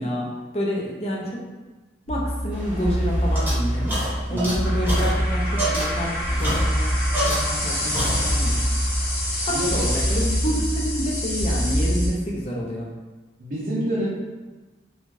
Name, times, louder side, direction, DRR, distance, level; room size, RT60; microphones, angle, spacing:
voice 1, 0.0-1.4 2.1-4.0 4.3-6.9 7.2-8.6 9.4-12.9, equal, 35° left, -2 dB, 0.5 m, -28 dB
sound 1, 2.1-12.1, equal, 55° left, 0.9 m, -24 dB
sound 2, 2.5-7.7 7.9-8.6, right 1 dB, 10° right, 0.7 m, -29 dB
voice 2, 13.4-14.1, equal, 45° right, -8 dB, 0.5 m, -27 dB
2.5 x 2.3 x 3.1 m, 1.2 s
head